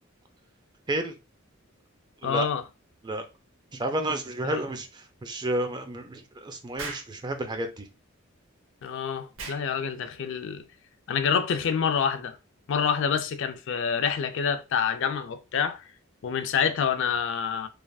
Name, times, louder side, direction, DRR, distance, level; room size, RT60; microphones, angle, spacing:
voice 1, 2.2-2.6 4.4-4.6 8.8-10.6 11.1-12.4 12.7-15.8 16.2-17.7, left 7 dB, 65° left, 0.4 m, -27 dB
voice 2, 3.7-7.9, right 1 dB, 20° right, 0.4 m, -31 dB
Explosion, 6.8-7.1 9.4-9.7, right 4 dB, 65° right, 0.7 m, -37 dB
3.3 x 2.4 x 2.3 m
head